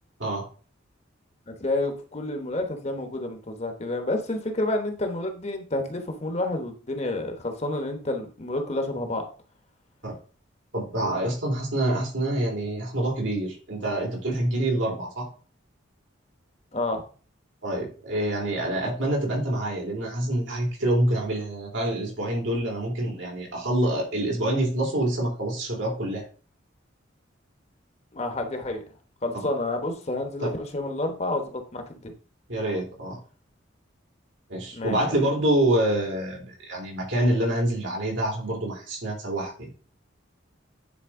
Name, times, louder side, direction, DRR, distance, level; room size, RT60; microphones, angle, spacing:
voice 1, 1.6-9.3 16.7-17.0 28.1-28.8 29.2-32.1 34.7-35.2, left 2 dB, 35° left, 5 dB, 1.1 m, -29 dB
voice 2, 10.7-15.3 17.6-26.2 32.5-33.2 34.5-39.7, right 1 dB, 80° right, -2 dB, 3.6 m, -26 dB
9.6 x 4.3 x 3.7 m, 0.38 s
head